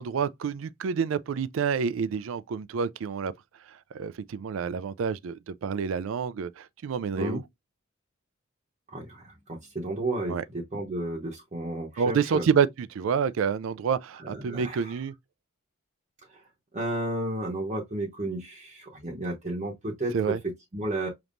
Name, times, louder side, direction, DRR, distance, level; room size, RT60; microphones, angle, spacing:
voice 1, 0.0-3.3 3.9-7.4 10.3-10.4 12.0-15.1 20.1-20.4, right 6 dB, 70° right, 0.4 m, -28 dB
voice 2, 8.9-12.5 14.2-15.0 16.3-16.4 16.7-21.1, right 1 dB, 35° right, 0.9 m, -33 dB
5.1 x 2.9 x 2.5 m
head